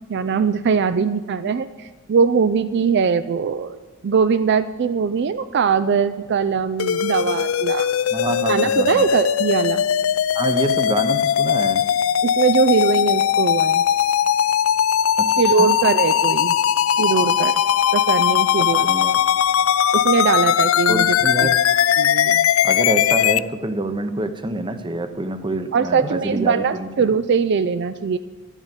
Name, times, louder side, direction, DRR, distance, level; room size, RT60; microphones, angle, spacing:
voice 1, 0.1-3.8 4.0-7.9 8.5-9.8 12.2-13.8 15.4-16.6 17.0-17.6 17.9-18.9 19.9-21.5 22.0-22.5 25.7-28.2, right 5 dB, 55° right, 12 dB, 0.4 m, -21 dB
sound 1, 6.8-23.4, left 9 dB, 70° left, 0.3 m, -19 dB
voice 2, 8.1-9.1 10.3-11.8 15.2-15.7 18.6-19.2 20.9-21.6 22.6-27.1, right 2 dB, 25° right, 10 dB, 0.7 m, -26 dB
12.0 x 7.3 x 8.1 m, 1.3 s
head